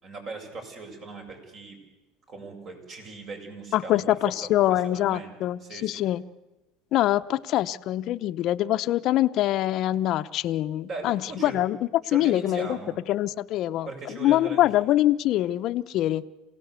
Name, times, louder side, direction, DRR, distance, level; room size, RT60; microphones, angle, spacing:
voice 1, 0.0-1.8 2.3-4.3 4.7-5.3 5.6-6.0 10.9-11.6 12.0-12.9 13.9-14.9, right 3 dB, 45° right, 4 dB, 7.1 m, -39 dB
voice 2, 3.7-6.2 6.9-11.8 12.1-12.8 13.1-16.3, left 14 dB, 55° left, 11 dB, 0.8 m, -24 dB
27.0 x 17.5 x 8.2 m, 1.0 s
supercardioid pair, 110°, 0 cm